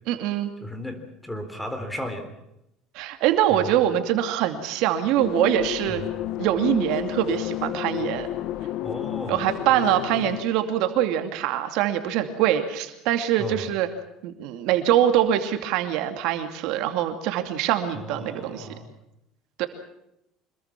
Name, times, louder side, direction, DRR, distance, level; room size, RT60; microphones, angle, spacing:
voice 1, 0.1-0.5 2.9-6.0 6.4-8.3 9.3-13.9 14.2-18.7 19.6-19.7, right 11 dB, 70° right, 7 dB, 2.5 m, -23 dB
voice 2, 0.6-2.3 3.5-3.7 5.9-6.1 8.8-9.5 13.4-13.7 17.9-19.0, equal, 5° left, 8 dB, 3.9 m, -35 dB
sound 1, 5.2-10.4, left 13 dB, 60° left, 1.3 m, -31 dB
26.0 x 21.5 x 6.1 m, 0.83 s
cardioid pair, 120°, 0 cm